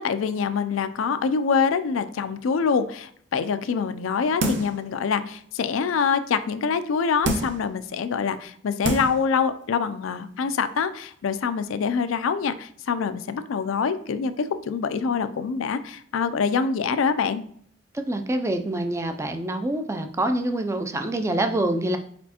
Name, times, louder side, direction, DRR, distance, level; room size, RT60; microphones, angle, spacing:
voice 1, 0.0-17.4, left 5 dB, 85° left, 11 dB, 0.4 m, -25 dB
sound 1, 4.4-4.8 5.3-5.4 7.2-7.7 8.4-8.5 8.8-9.2 9.6-9.7, right 1 dB, 60° right, 0.6 m, -26 dB
voice 2, 17.9-22.0, right 1 dB, 15° right, 6 dB, 0.3 m, -26 dB
4.2 x 4.1 x 2.8 m, 0.64 s
head